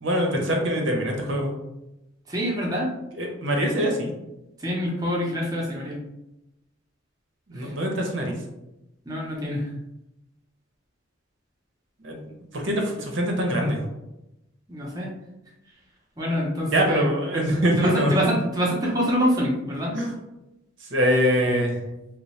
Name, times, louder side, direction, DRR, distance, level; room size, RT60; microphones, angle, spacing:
voice 1, 0.0-1.5 3.1-4.1 7.5-8.4 12.0-12.2 12.5-13.9 16.7-18.1 19.9-20.2 20.8-21.8, equal, 65° right, 1 dB, 0.7 m, -23 dB
voice 2, 2.3-2.9 4.6-6.0 7.5-7.7 9.1-9.7 14.7-15.1 16.2-17.0 17.8-20.0, equal, 20° right, -4 dB, 0.6 m, -26 dB
3.1 x 2.1 x 4.1 m, 0.91 s
head